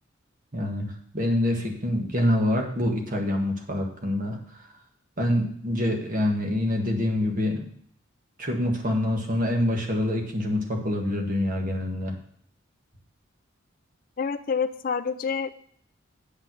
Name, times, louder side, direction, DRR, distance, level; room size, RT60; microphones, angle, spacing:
voice 1, 0.5-0.9 1.1-4.4 5.2-7.6 8.4-12.1, left 1 dB, 45° right, 2 dB, 1.7 m, -26 dB
voice 2, 14.2-15.5, left 6 dB, 45° left, 12 dB, 0.4 m, -27 dB
8.7 x 5.6 x 6.2 m, 0.62 s
head